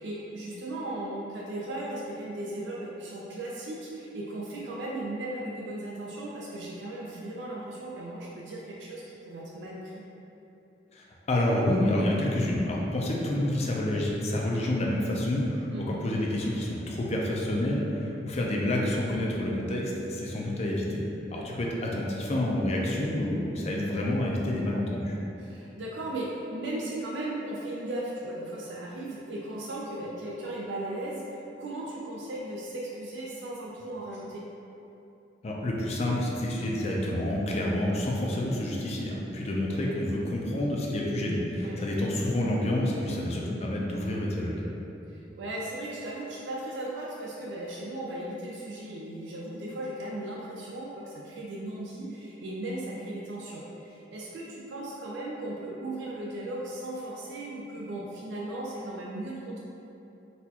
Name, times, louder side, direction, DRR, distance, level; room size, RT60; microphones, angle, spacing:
voice 1, 0.0-10.0 13.4-13.7 15.7-15.9 21.3-21.5 25.4-34.5 37.5-37.6 41.6-41.8 43.1-43.2 45.1-59.6, right 1 dB, 80° right, -4 dB, 0.4 m, -37 dB
voice 2, 10.9-21.0 21.3-25.2 35.4-44.6, left 1 dB, 35° left, -3 dB, 0.4 m, -28 dB
4.1 x 2.3 x 2.8 m, 2.9 s
head